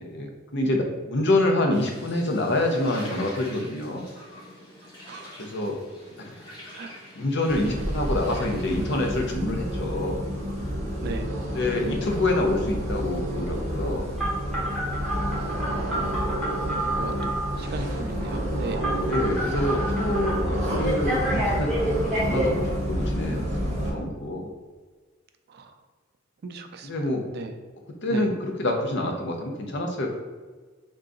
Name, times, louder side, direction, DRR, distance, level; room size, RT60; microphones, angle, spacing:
voice 1, 0.0-4.0 5.4-5.8 6.2-6.4 7.1-10.2 11.5-14.1 19.0-21.9 22.2-22.6 22.8-24.5 26.8-27.3 28.0-30.1, left 1 dB, 60° left, 2 dB, 0.6 m, -27 dB
sound 1, 1.7-9.0, left 1 dB, 20° left, 1.2 m, -45 dB
voice 2, 5.1-5.4 6.7-6.9 11.0-11.3 15.0-18.8 25.5-25.8 26.4-26.9 27.3-27.5 28.1-28.3, right 3 dB, 50° right, 6 dB, 0.4 m, -38 dB
sound 2, 7.5-23.9, equal, 35° right, 0.8 m, -29 dB
Telephone, 14.2-17.5 18.8-20.3 20.8-22.5, right 1 dB, 5° left, 1.0 m, -29 dB
3.7 x 2.3 x 3.8 m, 1.4 s
head